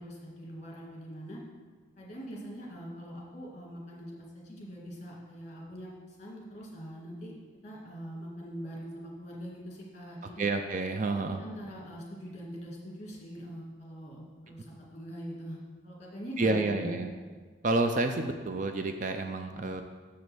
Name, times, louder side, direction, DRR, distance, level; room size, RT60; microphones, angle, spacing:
voice 1, 0.0-1.4 2.0-7.4 7.6-10.5 11.2-15.6 15.8-16.9 19.5-19.8, equal, 35° left, -3 dB, 1.9 m, -43 dB
voice 2, 10.4-11.4 16.4-17.1 17.6-19.8, right 2 dB, 40° right, 6 dB, 0.4 m, -29 dB
6.8 x 5.3 x 6.1 m, 1.5 s
head